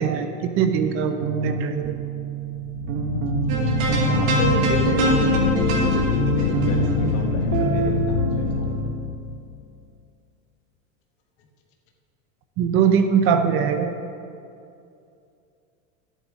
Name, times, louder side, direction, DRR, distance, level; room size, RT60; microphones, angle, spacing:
voice 1, 0.0-1.9 12.6-13.9, right 7 dB, 35° right, 8 dB, 0.5 m, -21 dB
sound 1, 1.2-9.0, right 5 dB, 50° right, 1.2 m, -26 dB
sound 2, 2.6-9.6, left 7 dB, 90° left, 0.7 m, -25 dB
sound 3, 3.5-7.8, right 2 dB, 80° right, 2.4 m, -26 dB
voice 2, 4.1-8.6, left 3 dB, 40° left, 1 dB, 1.1 m, -31 dB
13.0 x 8.2 x 3.5 m, 2.5 s
supercardioid pair, 150°, 39 cm